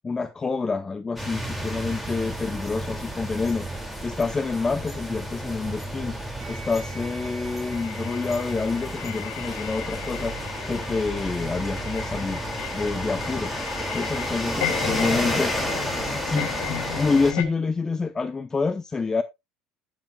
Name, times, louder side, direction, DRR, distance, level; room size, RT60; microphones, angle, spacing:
voice 1, 0.0-3.7 4.0-6.2 6.5-10.4 10.7-12.4 12.7-13.5 13.9-15.7 16.1-19.2, left 4 dB, 20° left, 0.7 m, -27 dB
sound 1, 1.2-17.3, right 1 dB, 5° right, 2.4 m, -32 dB
sound 2, 6.4-16.1, right 3 dB, 65° right, 3.3 m, -51 dB
sound 3, 7.7-17.4, left 11 dB, 80° left, 1.8 m, -34 dB
15.0 x 7.2 x 2.3 m
supercardioid pair, 105°, 3 cm